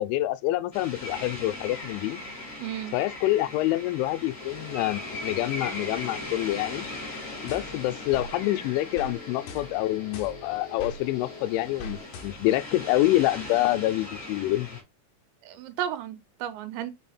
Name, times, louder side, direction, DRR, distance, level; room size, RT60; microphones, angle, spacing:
voice 1, 0.0-2.2 2.9-6.9 7.4-14.7, left 16 dB, 85° left, 3.0 m, -27 dB
sound 1, 0.7-14.8, left 2 dB, 20° left, 2.3 m, -40 dB
voice 2, 2.6-2.9 15.4-16.9, right 10 dB, 80° right, 3.0 m, -33 dB
Guitar, 4.4-12.1, left 5 dB, 45° left, 1.9 m, -45 dB
sound 2, 7.5-8.3 9.0-9.2 9.5-11.0 11.8-12.6, left 1 dB, 70° left, 2.6 m, -41 dB
6.3 x 4.0 x 4.2 m
omnidirectional pair, 5.4 m